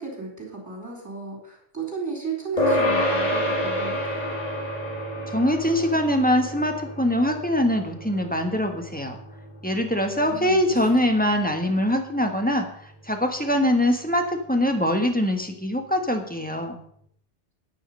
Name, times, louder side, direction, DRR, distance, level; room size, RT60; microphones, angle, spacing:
voice 1, 0.0-4.2 10.1-10.6, right 4 dB, 15° right, -4 dB, 4.1 m, -34 dB
sound 1, 2.6-12.3, left 1 dB, 35° left, 2.0 m, -29 dB
voice 2, 5.3-9.2 9.6-12.6 13.0-16.8, left 1 dB, 10° left, 4 dB, 1.4 m, -23 dB
9.8 x 9.6 x 5.5 m, 0.67 s
omnidirectional pair, 1.2 m